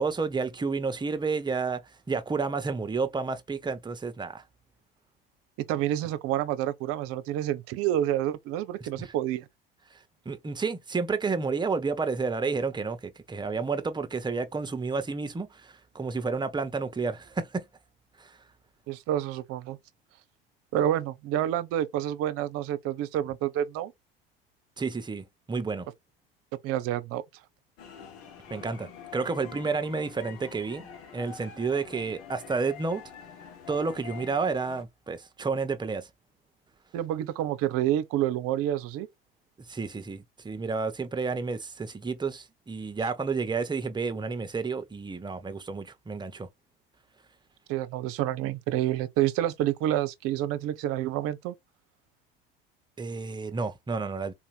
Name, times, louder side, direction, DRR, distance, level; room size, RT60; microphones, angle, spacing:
voice 1, 0.0-1.8 2.1-4.4 9.0-9.1 10.2-17.6 18.2-18.3 24.8-25.8 28.5-30.9 31.1-33.0 33.7-36.1 39.7-46.5 53.0-54.3, right 4 dB, 15° right, 1.0 m, -30 dB
voice 2, 5.6-9.5 18.9-19.8 20.7-23.9 26.6-27.2 36.9-39.1 47.7-51.5, right 12 dB, 50° right, 0.8 m, -28 dB
sound 1, 27.8-34.8, left 7 dB, 50° left, 1.5 m, -46 dB
4.2 x 2.9 x 4.2 m
figure-of-eight pair, 70°, 29 cm